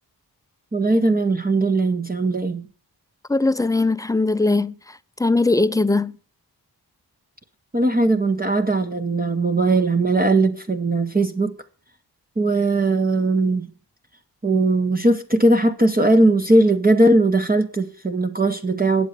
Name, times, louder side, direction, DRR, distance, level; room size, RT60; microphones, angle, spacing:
voice 1, 0.7-2.6 7.7-11.6 12.4-13.7 14.4-19.1, right 2 dB, 20° right, 0.8 m, -19 dB
voice 2, 3.3-6.2, left 3 dB, 10° left, 0.5 m, -20 dB
9.6 x 7.8 x 6.5 m
wide cardioid pair, 90°, 40 cm